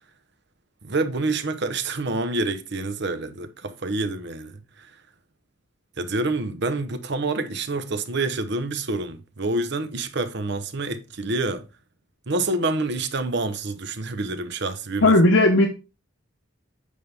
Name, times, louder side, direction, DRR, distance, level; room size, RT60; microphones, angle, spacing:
voice 1, 0.8-4.9 6.0-11.7 12.3-15.2, right 2 dB, 60° right, 0.9 m, -27 dB
voice 2, 15.0-15.7, left 2 dB, 75° left, 1.0 m, -15 dB
8.6 x 5.4 x 3.4 m
head